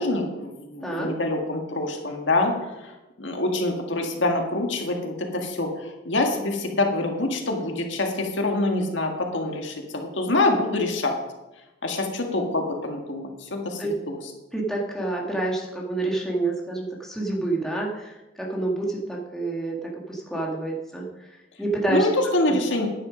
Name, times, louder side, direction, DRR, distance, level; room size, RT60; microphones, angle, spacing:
voice 1, 0.0-2.5 2.8-11.2 11.8-14.2 21.9-22.9, left 2 dB, 75° left, 2 dB, 1.8 m, -25 dB
voice 2, 14.5-21.0 21.6-22.1 22.5-22.6, right 2 dB, 5° left, -3 dB, 1.9 m, -28 dB
10.5 x 9.9 x 5.1 m, 1.0 s
head